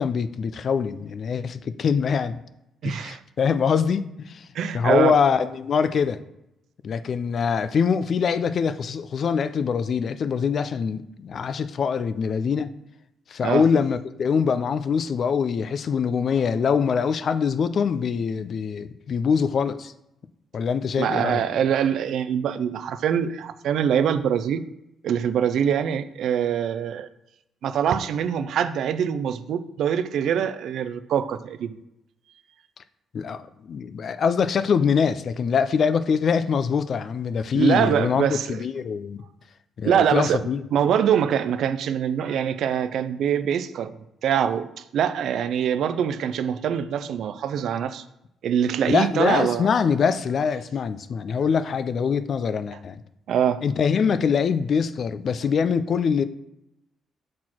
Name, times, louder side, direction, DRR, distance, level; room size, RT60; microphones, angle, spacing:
voice 1, 0.0-2.4 2.8-4.5 4.7-6.2 6.8-12.7 13.3-19.9 20.5-21.4 33.1-39.2 39.8-40.6 48.9-53.0 53.6-56.2, left 6 dB, 55° left, 0.4 m, -24 dB
voice 2, 2.8-3.2 4.5-5.2 13.4-13.6 21.0-24.6 25.0-27.1 27.6-31.8 37.5-38.6 39.9-43.9 44.2-48.0 48.4-49.7 53.3-53.6, right 8 dB, 75° right, 0.4 m, -24 dB
6.2 x 4.2 x 4.4 m
cardioid pair, 90°, 0 cm